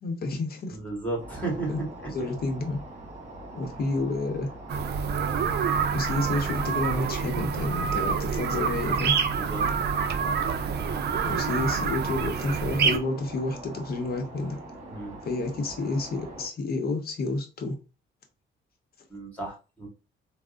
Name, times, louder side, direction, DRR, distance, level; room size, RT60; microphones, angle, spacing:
voice 1, 0.0-0.8 1.7-1.8 2.1-2.8 3.5-4.5 5.9-9.1 11.2-14.6 15.2-17.8, left 3 dB, 50° left, 0.8 m, -30 dB
voice 2, 0.7-1.7 2.0-2.1 8.8-9.0 9.3-9.7 14.9-15.2 19.1-19.9, right 2 dB, 5° left, 1.7 m, -34 dB
sound 1, 1.2-16.5, right 2 dB, 35° right, 1.3 m, -42 dB
sound 2, 4.7-13.0, right 6 dB, 55° right, 0.5 m, -27 dB
3.4 x 2.1 x 2.4 m
cardioid pair, 90°, 20 cm